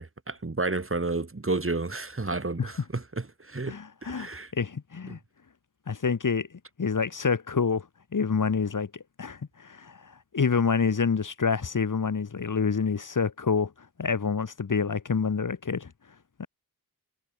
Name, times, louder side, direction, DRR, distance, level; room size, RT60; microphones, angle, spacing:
voice 1, 0.0-4.5, right 3 dB, 35° right, 5.8 m, -31 dB
voice 2, 3.7-5.2 5.9-6.5 6.8-7.9 8.1-15.9 16.4-16.5, left 5 dB, 55° left, 1.8 m, -27 dB
wide cardioid pair, 80°, 37 cm